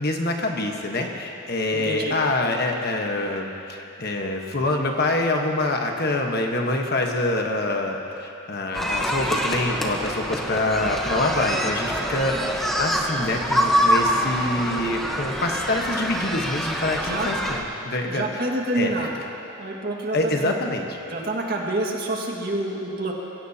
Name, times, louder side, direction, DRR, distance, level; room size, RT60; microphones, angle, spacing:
voice 1, 0.0-18.5 18.7-18.9 20.1-20.9, left 2 dB, 50° left, 2 dB, 1.3 m, -25 dB
voice 2, 1.7-2.1 17.0-17.3 18.1-19.1 19.6-20.6 21.1-23.1, right 1 dB, 45° right, -1 dB, 1.9 m, -27 dB
sound 1, 8.7-17.6, equal, ahead, 1.0 m, -25 dB
22.5 x 16.5 x 2.9 m, 2.9 s
head